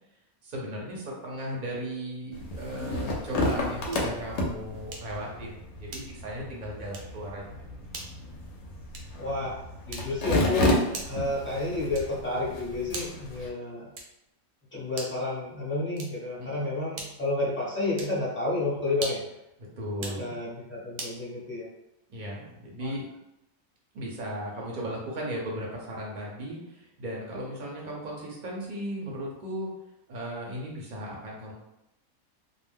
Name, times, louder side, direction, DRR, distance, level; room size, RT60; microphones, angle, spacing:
voice 1, 0.4-7.4 16.4-16.6 19.8-20.3 22.1-23.1 23.9-29.7 30.1-31.5, equal, 45° right, -3 dB, 0.8 m, -36 dB
sound 1, 2.3-13.5, left 1 dB, 65° left, 0.8 m, -32 dB
sound 2, 3.9-4.2 4.9-5.2 5.9-6.3 6.9-7.2 7.9-8.2 8.9-9.2 9.9-10.3 10.9-11.3 11.9-12.3 12.9-13.3 13.9-14.3 14.9-15.3 15.9-16.3 16.9-17.3 17.9-18.2 18.9-19.4 19.9-20.2 21.0-21.2, right 3 dB, 80° right, 1.1 m, -40 dB
voice 2, 9.2-9.6 9.9-10.7 11.1-13.9 14.7-19.2 20.0-21.7 22.8-23.0, left 2 dB, 10° left, -8 dB, 0.9 m, -30 dB
2.5 x 2.1 x 3.5 m, 0.89 s
omnidirectional pair, 1.5 m